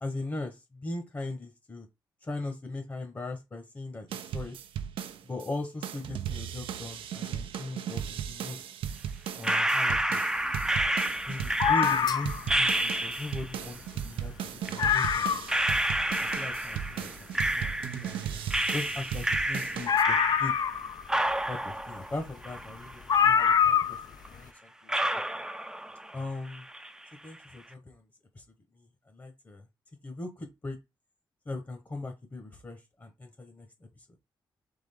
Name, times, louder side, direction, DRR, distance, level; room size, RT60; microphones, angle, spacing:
voice 1, 0.0-1.9 2.2-4.6 5.2-8.6 9.3-10.2 11.3-15.4 16.2-18.4 18.7-20.6 21.5-24.9 26.1-26.7 27.2-28.0 28.3-28.4 28.7-28.9 29.1-29.6 30.0-30.8 31.5-33.7 34.0-34.1, left 2 dB, 30° left, 1.0 m, -39 dB
sound 1, 4.1-5.5 5.8-20.0, right 9 dB, 85° right, 0.5 m, -37 dB
sound 2, 9.4-13.6 14.7-14.8 15.5-18.2 18.5-20.8 21.1-23.2 23.5-23.6 24.2-24.3 24.9-26.2 26.5-27.0, right 1 dB, 5° right, 0.5 m, -30 dB
sound 3, 11.6-12.5 13.6-13.7 14.0-14.1 14.5-14.6 14.8-15.6 16.1-16.2 19.9-21.1 22.3-22.4 23.1-24.1 24.3-24.4, left 7 dB, 50° left, 0.4 m, -24 dB
3.8 x 3.5 x 3.5 m
cardioid pair, 65°, 9 cm